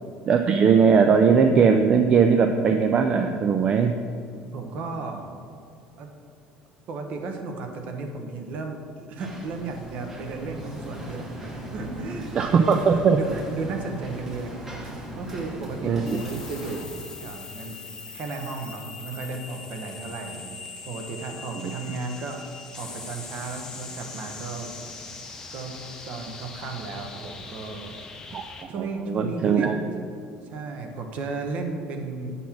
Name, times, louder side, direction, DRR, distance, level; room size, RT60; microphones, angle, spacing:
voice 1, 0.3-3.9 12.4-13.2 15.8-16.2 28.3-28.4 28.8-29.8, right 6 dB, 30° right, 5 dB, 0.3 m, -19 dB
voice 2, 4.5-5.2 6.0-6.1 6.9-17.8 18.1-20.5 20.9-24.7 25.5-25.7 26.0-27.9 28.7-29.9 30.5-32.4, right 3 dB, 45° right, 4 dB, 0.9 m, -34 dB
sound 1, 9.2-16.9, right 1 dB, 15° right, 1.0 m, -38 dB
sound 2, 16.1-28.6, left 4 dB, 20° left, 0.6 m, -41 dB
8.4 x 4.2 x 5.8 m, 2.3 s
cardioid pair, 160°, 3 cm